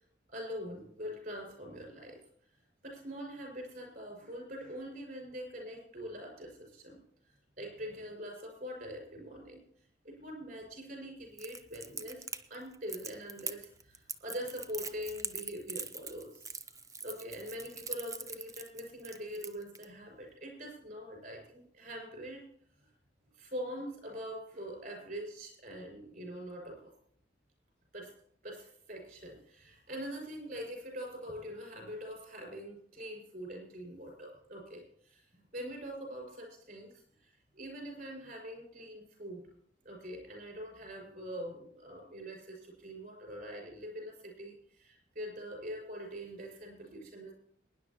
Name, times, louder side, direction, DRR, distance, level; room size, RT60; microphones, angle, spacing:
voice 1, 0.3-2.2 2.8-7.0 7.2-9.6 10.0-22.4 22.8-22.9 23.3-26.9 27.9-28.1 28.4-39.5 39.8-47.3, equal, 50° right, 1 dB, 5.7 m, -44 dB
Crackle, 11.4-19.8, right 5 dB, 20° right, 0.5 m, -42 dB
22.5 x 10.0 x 2.9 m, 0.64 s
head